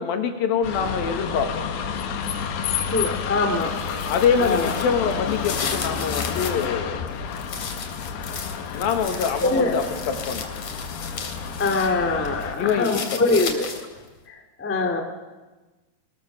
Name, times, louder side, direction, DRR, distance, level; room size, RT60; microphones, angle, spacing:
voice 1, 0.0-1.7 4.1-7.1 8.7-10.5 12.6-13.5, left 6 dB, 70° left, 6 dB, 3.3 m, -25 dB
sound 1, 0.6-12.6, left 7 dB, 85° left, 3.6 m, -30 dB
voice 2, 2.9-3.7 4.4-4.7 9.4-9.8 11.6-13.7 14.3-15.0, left 3 dB, 10° left, 3 dB, 0.7 m, -23 dB
sound 2, 3.5-6.7 7.1-11.9 12.3-14.0, left 5 dB, 45° left, 4.2 m, -35 dB
21.5 x 21.0 x 7.1 m, 1.2 s
omnidirectional pair, 4.5 m